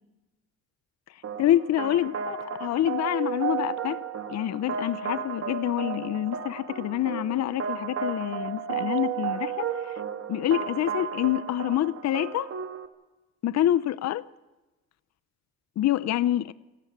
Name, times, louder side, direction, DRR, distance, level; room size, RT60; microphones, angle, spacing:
sound 1, 1.2-12.9, right 7 dB, 50° right, 1.8 m, -33 dB
voice 1, 1.4-4.0 4.3-10.0 10.3-12.5 13.4-14.2 15.8-16.5, left 12 dB, 60° left, 0.7 m, -27 dB
27.5 x 12.5 x 8.7 m
cardioid pair, 90°, 30 cm